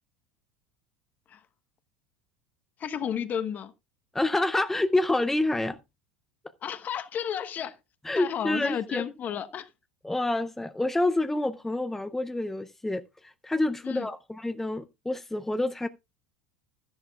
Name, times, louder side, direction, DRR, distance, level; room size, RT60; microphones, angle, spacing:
voice 1, 2.8-3.7 6.6-7.7 8.1-9.7 13.8-14.1, left 8 dB, 35° left, 1.1 m, -32 dB
voice 2, 4.1-5.8 8.0-9.0 10.0-15.9, left 2 dB, 5° left, 0.6 m, -28 dB
13.5 x 10.5 x 2.3 m
figure-of-eight pair, 75°, 5 cm